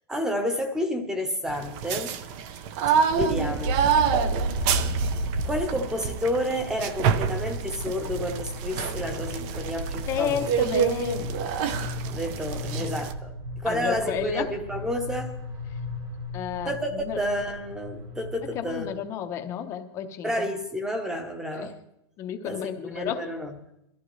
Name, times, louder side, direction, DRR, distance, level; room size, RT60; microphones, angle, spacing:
voice 1, 0.1-2.2 2.9-3.9 5.4-10.5 12.1-13.3 13.6-15.4 16.6-19.0 20.2-21.7 22.4-23.5, equal, 5° right, 7 dB, 0.9 m, -30 dB
sound 1, 1.5-13.1, right 7 dB, 30° right, 0.5 m, -28 dB
sound 2, 3.1-19.0, equal, 80° right, 4.4 m, -34 dB
voice 2, 10.1-11.3 13.7-14.5 16.3-17.2 18.5-20.5 21.5-21.7 22.2-23.2, left 9 dB, 20° left, 7 dB, 0.7 m, -31 dB
22.0 x 14.0 x 3.1 m, 0.84 s
supercardioid pair, 180°, 14 cm